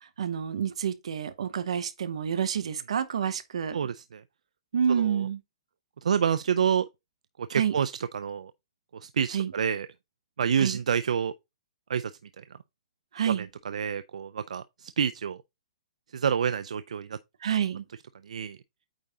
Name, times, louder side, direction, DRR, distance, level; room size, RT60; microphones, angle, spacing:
voice 1, 0.0-3.8 4.7-5.4 7.5-7.7 9.3-9.5 10.6-10.8 13.1-13.5 17.4-17.8, right 8 dB, 60° right, 1.0 m, -28 dB
voice 2, 3.7-4.2 4.9-5.3 6.0-6.9 7.4-8.5 8.9-9.9 10.4-11.3 11.9-12.1 12.4-12.5 13.3-15.4 16.1-17.2 18.2-18.6, right 7 dB, 85° right, 0.4 m, -28 dB
8.8 x 3.6 x 3.9 m
hypercardioid pair, 180°, 4 cm